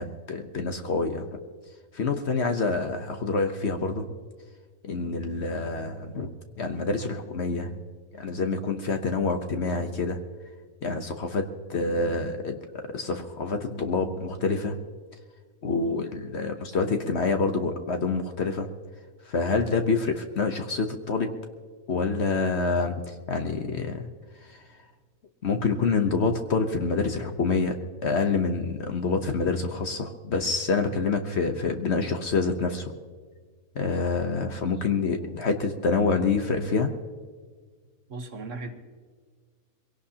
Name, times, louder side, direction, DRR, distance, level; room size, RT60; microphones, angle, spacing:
voice 1, 0.0-1.4 1.9-4.1 4.8-6.3 6.6-7.8 8.1-10.2 10.8-12.6 12.9-14.8 15.6-18.7 19.3-21.3 21.9-24.0 24.5-24.6 25.4-32.9 33.7-36.9, left 4 dB, 50° left, 6 dB, 1.1 m, -27 dB
voice 2, 38.1-38.8, right 2 dB, 55° right, 6 dB, 1.5 m, -38 dB
23.0 x 17.0 x 2.9 m, 1.5 s
omnidirectional pair, 1.6 m